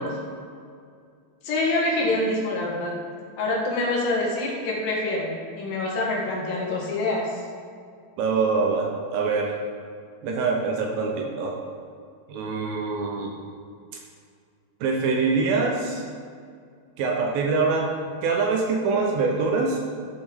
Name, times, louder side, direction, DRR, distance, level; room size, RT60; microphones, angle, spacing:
voice 1, 1.4-2.9 3.4-7.2, left 2 dB, 65° left, -3 dB, 2.9 m, -25 dB
voice 2, 8.2-9.6 10.2-11.6 12.3-13.4 14.8-16.0 17.0-17.9 18.2-19.8, right 4 dB, 80° right, 0 dB, 2.3 m, -24 dB
13.5 x 5.3 x 3.6 m, 2.2 s
omnidirectional pair, 4.6 m